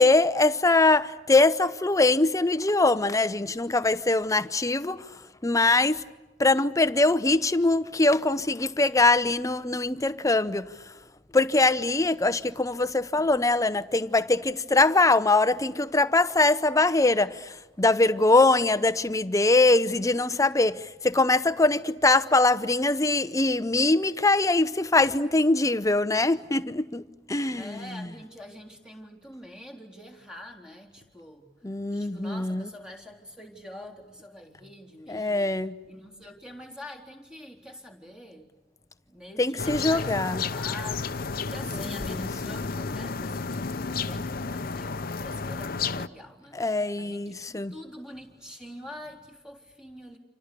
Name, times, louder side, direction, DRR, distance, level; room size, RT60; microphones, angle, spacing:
voice 1, 0.0-5.1 5.4-6.0 6.4-10.7 11.3-28.1 31.6-32.6 35.1-35.7 39.4-40.4 42.0-42.3 46.5-47.7, left 2 dB, 20° left, 0.8 m, -22 dB
voice 2, 27.6-31.5 31.9-35.5 35.9-38.5 39.1-50.2, left 1 dB, 5° right, 3.8 m, -45 dB
sound 1, 39.6-46.1, left 4 dB, 55° left, 0.8 m, -32 dB
29.5 x 27.0 x 6.9 m
head